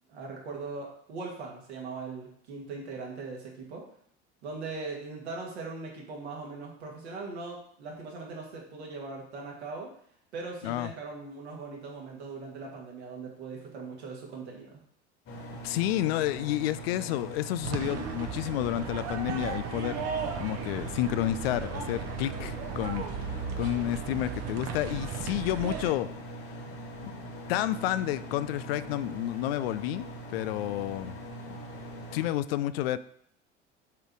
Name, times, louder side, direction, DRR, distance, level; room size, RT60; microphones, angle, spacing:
voice 1, 0.1-3.9 4.4-9.9 10.3-14.8, right 3 dB, 70° right, -1 dB, 2.2 m, -40 dB
sound 1, 15.2-32.3, equal, 40° left, 1.9 m, -42 dB
voice 2, 15.6-20.1 20.4-23.1 23.6-26.1 27.0-30.0 30.3-31.2 31.5-31.6 32.1-33.0, left 13 dB, 60° left, 15 dB, 0.5 m, -30 dB
sound 2, 17.6-25.9, right 6 dB, 45° right, 1.0 m, -36 dB
7.3 x 4.0 x 4.8 m, 0.65 s
figure-of-eight pair, 70°, 34 cm